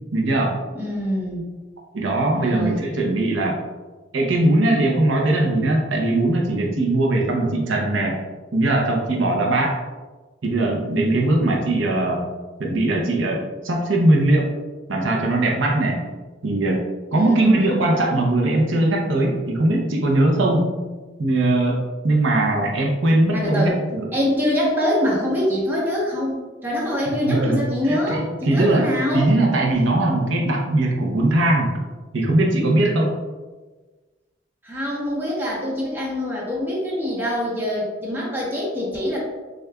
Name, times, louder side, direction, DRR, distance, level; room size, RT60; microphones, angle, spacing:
voice 1, 0.1-0.5 1.9-3.6 4.1-8.2 8.5-9.8 10.4-12.2 12.6-13.4 13.6-14.5 14.9-16.0 16.4-16.8 17.1-20.7 21.2-24.1 27.3-31.8 32.1-33.1, right 2 dB, 90° right, 0 dB, 0.7 m, -20 dB
voice 2, 0.7-1.5 2.3-2.8 17.1-17.6 23.3-23.8 24.1-29.3 34.6-39.2, left 1 dB, 10° right, -5 dB, 0.9 m, -24 dB
6.3 x 2.3 x 2.3 m, 1.3 s
head